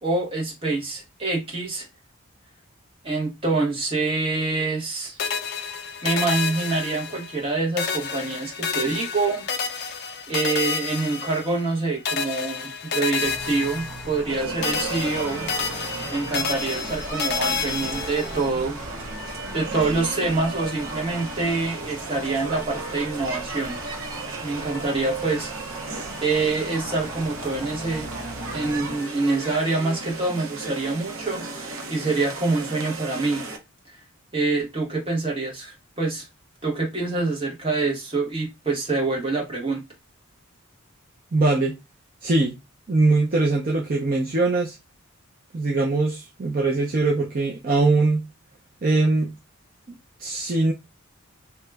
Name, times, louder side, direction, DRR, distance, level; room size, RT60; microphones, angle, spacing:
voice 1, 0.0-1.9 3.0-5.2 6.0-9.5 10.3-15.5 16.1-18.8 19.5-23.8 24.4-25.5 26.2-28.1 28.5-33.5 34.3-36.3 36.6-39.8, right 3 dB, 25° right, 1.0 m, -26 dB
sound 1, 5.2-7.5 7.8-11.8 12.0-14.4 14.6-18.5, left 6 dB, 50° left, 0.4 m, -30 dB
chugging diesel (bus) and rev, 13.2-29.0, equal, ahead, 0.8 m, -40 dB
sound 2, 14.3-33.6, right 3 dB, 65° right, 0.8 m, -34 dB
voice 2, 41.3-41.7 42.2-42.6 42.9-44.8 45.5-48.3 48.8-49.3 49.9-50.7, right 3 dB, 40° right, 0.5 m, -22 dB
2.9 x 2.2 x 3.3 m
head